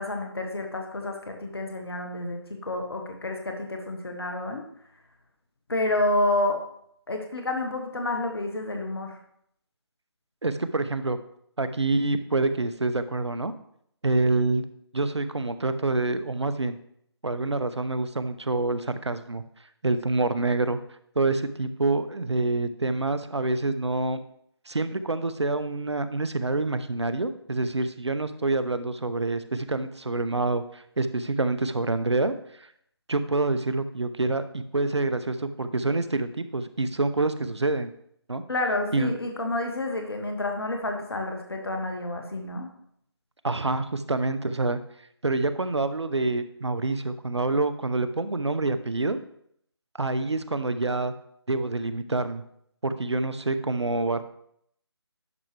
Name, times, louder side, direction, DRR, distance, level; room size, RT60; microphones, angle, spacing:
voice 1, 0.0-4.6 5.7-6.6 7.1-9.2 38.5-42.7, left 2 dB, 60° left, 3 dB, 1.4 m, -29 dB
voice 2, 10.4-11.2 11.6-13.5 14.0-14.6 14.9-16.8 17.2-19.4 19.8-20.8 21.2-24.2 24.7-32.3 32.6-32.7 33.1-37.9 38.3-38.4 38.9-39.2 43.4-44.8 45.2-49.2 50.0-51.1 51.5-52.4 52.8-54.2, right 2 dB, 80° right, 12 dB, 0.7 m, -27 dB
11.0 x 5.7 x 3.3 m, 0.70 s
figure-of-eight pair, 155°, 14 cm